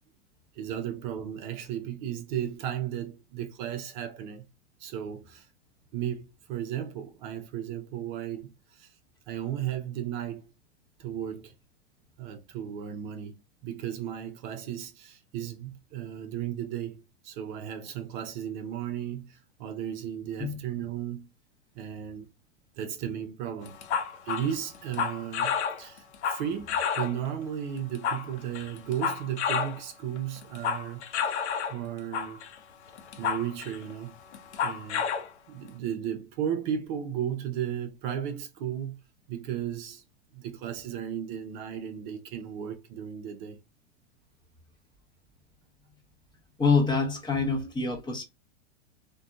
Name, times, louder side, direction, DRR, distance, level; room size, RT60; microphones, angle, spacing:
voice 1, 0.5-4.4 4.8-5.5 5.9-9.0 9.3-10.4 11.0-11.5 12.2-13.3 13.6-21.3 21.7-22.3 22.8-23.8 24.2-31.4 31.7-32.4 33.2-34.2 34.6-35.1 35.5-39.0 39.3-40.0 40.3-43.6, right 10 dB, 45° right, 0.6 m, -35 dB
sound 1, 23.7-27.3 27.8-29.8 30.2-31.8 32.1-32.5 33.0-33.9 34.3-35.3, left 6 dB, 80° left, 0.7 m, -30 dB
voice 2, 46.6-48.2, left 4 dB, 15° left, 0.7 m, -26 dB
2.6 x 2.2 x 2.3 m
hypercardioid pair, 115°, 34 cm